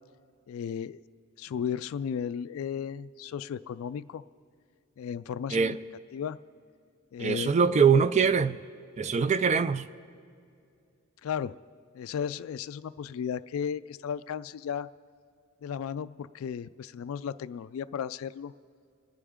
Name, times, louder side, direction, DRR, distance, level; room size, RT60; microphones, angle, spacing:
voice 1, 0.5-1.0 1.4-4.2 5.0-5.8 6.1-6.4 7.1-7.5 11.2-11.6 11.9-14.9 15.6-18.5, left 7 dB, 80° left, 0.3 m, -34 dB
voice 2, 7.2-8.6 9.0-9.9, right 6 dB, 35° right, 0.3 m, -23 dB
28.0 x 10.0 x 3.7 m
head